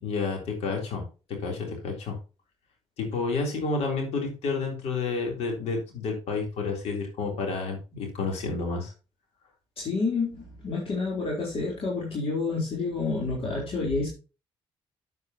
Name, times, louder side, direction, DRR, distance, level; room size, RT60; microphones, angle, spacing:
voice 1, 0.0-1.0 1.3-2.2 3.0-8.9, left 4 dB, 80° left, 2 dB, 3.7 m, -30 dB
voice 2, 9.8-14.1, left 3 dB, 60° left, -3 dB, 4.0 m, -29 dB
9.3 x 8.4 x 3.0 m, 0.32 s
supercardioid pair, 65°, 11 cm